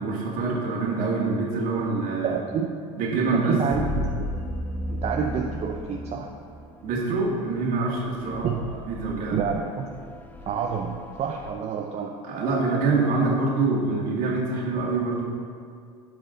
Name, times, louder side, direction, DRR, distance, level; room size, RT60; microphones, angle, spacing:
voice 1, 0.0-2.4 3.0-3.6 6.8-8.5 8.9-9.4 12.2-15.2, right 3 dB, 50° right, -2 dB, 1.9 m, -25 dB
voice 2, 2.2-2.7 3.1-4.3 4.9-6.3 8.4-8.8 9.3-9.9 10.5-12.2, right 6 dB, 35° right, 1 dB, 0.6 m, -28 dB
sound 1, 3.7-11.5, left 1 dB, 10° left, 0.6 m, -35 dB
12.0 x 4.9 x 3.9 m, 2.2 s
supercardioid pair, 105°, 18 cm